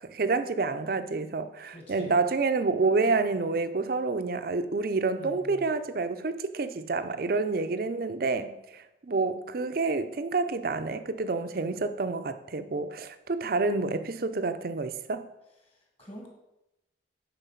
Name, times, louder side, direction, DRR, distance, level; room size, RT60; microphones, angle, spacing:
voice 1, 0.0-15.3, right 3 dB, 50° right, 0.5 m, -28 dB
voice 2, 1.7-2.2 5.2-5.7 15.6-16.3, equal, 30° left, 1.8 m, -46 dB
9.1 x 4.0 x 5.7 m
head